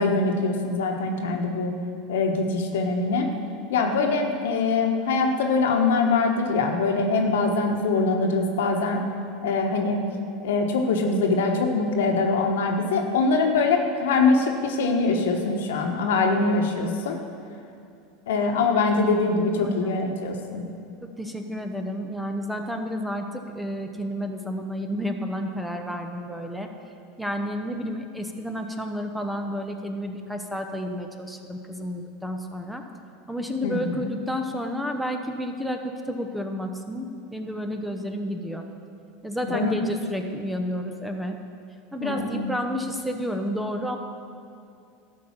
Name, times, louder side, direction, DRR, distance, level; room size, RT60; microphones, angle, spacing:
voice 1, 0.0-1.7 2.1-3.3 3.7-9.1 9.4-10.1 10.4-17.2 18.3-20.7 33.6-33.8 39.5-39.7 42.0-42.5, left 3 dB, 80° left, 3 dB, 1.2 m, -23 dB
voice 2, 19.6-20.0 21.0-26.7 27.2-32.8 33.3-38.6 39.2-41.4 41.9-44.0, equal, 5° right, 4 dB, 1.0 m, -31 dB
12.0 x 5.4 x 7.3 m, 2.6 s
hypercardioid pair, 100°, 0 cm